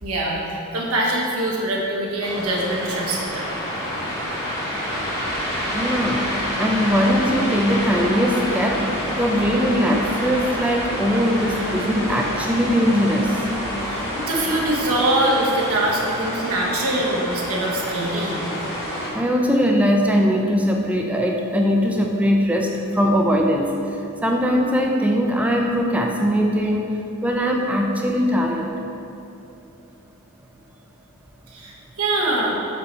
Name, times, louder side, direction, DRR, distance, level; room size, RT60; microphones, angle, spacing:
voice 1, 0.0-3.5 13.8-18.5 31.5-32.5, right 1 dB, 75° right, -3 dB, 1.0 m, -23 dB
sound 1, 2.2-19.1, equal, 15° left, 1.1 m, -28 dB
sound 2, 4.8-14.7, equal, 50° left, 1.1 m, -43 dB
voice 2, 5.7-6.3 6.6-8.8 9.2-13.4 19.1-23.7 24.2-26.9 27.2-28.7, equal, 5° right, 1 dB, 0.4 m, -20 dB
5.5 x 4.1 x 4.4 m, 2.8 s
head